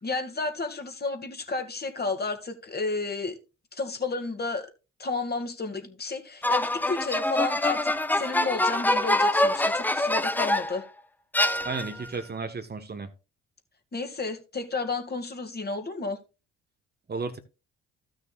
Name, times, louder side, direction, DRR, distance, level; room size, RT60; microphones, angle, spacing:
voice 1, 0.0-3.4 3.7-4.7 5.0-10.8 13.9-16.2, left 3 dB, 30° left, 2.1 m, -32 dB
sound 1, 6.4-10.8 11.3-12.1, left 1 dB, 5° left, 0.7 m, -25 dB
voice 2, 11.6-13.1 17.1-17.4, right 4 dB, 30° right, 1.3 m, -33 dB
15.0 x 6.4 x 2.4 m
figure-of-eight pair, 50°, 35 cm